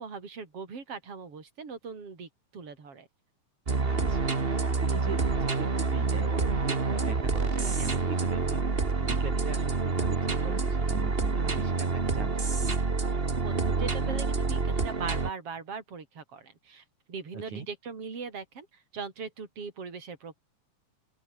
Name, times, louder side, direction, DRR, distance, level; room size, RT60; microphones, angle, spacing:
voice 1, 0.0-3.1 13.4-20.3, right 5 dB, 45° right, 5.5 m, -40 dB
sound 1, 3.7-15.3, right 4 dB, 25° right, 1.4 m, -27 dB
voice 2, 3.8-8.6 9.0-12.8 17.3-17.7, right 5 dB, 65° right, 6.3 m, -41 dB
open air
omnidirectional pair, 3.7 m